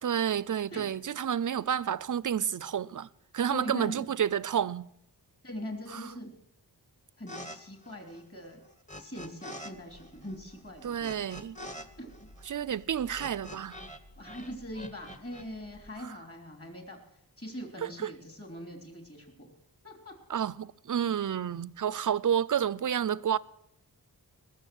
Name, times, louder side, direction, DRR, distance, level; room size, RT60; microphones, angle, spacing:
voice 1, 0.0-3.1 3.3-4.9 5.9-6.1 10.8-11.6 12.5-13.8 16.0-16.1 17.8-18.1 20.3-23.4, right 9 dB, 50° right, 0.5 m, -30 dB
voice 2, 3.5-4.1 5.4-6.3 7.2-8.6 9.0-11.1 12.0-12.3 14.2-17.0 17.4-19.5 19.8-20.1, equal, 35° left, 3.3 m, -42 dB
sound 1, 7.3-7.6 7.8-9.7 10.0-14.0 14.2-15.4, equal, 20° left, 1.2 m, -45 dB
sound 2, 9.7-15.9, left 1 dB, 80° left, 1.7 m, -56 dB
20.0 x 7.0 x 7.7 m
wide cardioid pair, 80°, 41 cm